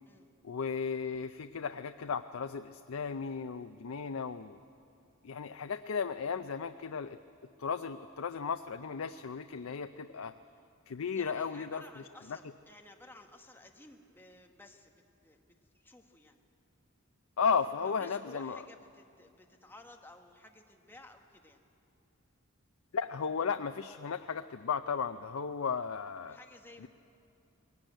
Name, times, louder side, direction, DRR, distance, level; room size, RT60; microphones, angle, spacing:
voice 1, 0.4-4.6 5.2-7.2 7.6-10.3 10.9-11.8 17.4-18.6 22.9-26.4 26.8-26.9, left 6 dB, 85° left, 9 dB, 0.5 m, -35 dB
voice 2, 11.1-15.0 15.2-15.5 15.7-16.4 17.5-21.6 26.3-26.9, left 2 dB, 10° left, 3 dB, 1.3 m, -55 dB
21.0 x 18.0 x 9.0 m, 2.7 s
head